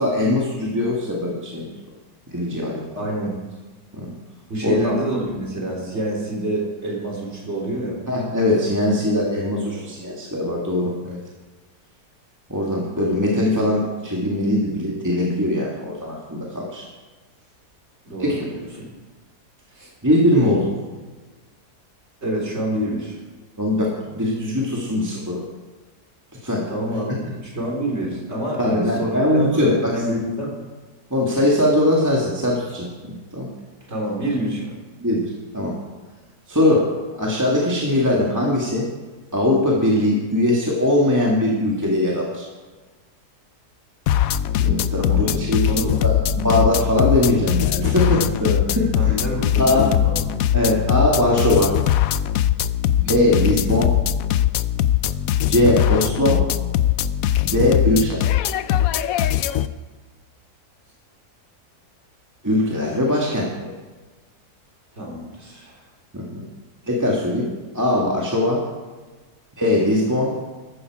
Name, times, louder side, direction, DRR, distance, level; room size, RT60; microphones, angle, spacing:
voice 1, 0.0-1.7 2.3-2.8 3.9-4.1 4.6-5.0 8.1-11.2 12.5-16.9 18.2-18.5 20.0-20.7 23.6-25.4 26.4-26.7 28.6-29.9 31.1-33.5 35.0-35.7 36.5-38.9 39.3-42.5 44.6-45.6 46.0-49.2 49.6-49.9 50.5-51.8 53.0-53.9 55.4-56.5 57.4-58.2 62.4-63.7 66.1-66.4 66.9-68.6 69.6-70.3, left 1 dB, 10° right, -4 dB, 1.9 m, -21 dB
voice 2, 3.0-3.3 4.5-8.0 9.6-9.8 18.0-18.9 19.7-19.9 22.2-23.2 26.7-30.5 33.9-34.7 45.0-46.0 49.0-50.3 62.8-63.0 64.9-65.8, right 1 dB, 40° right, -2 dB, 3.9 m, -27 dB
sound 1, 44.1-59.7, left 11 dB, 70° left, 0.9 m, -21 dB
14.5 x 13.0 x 4.9 m, 1.3 s
omnidirectional pair, 1.7 m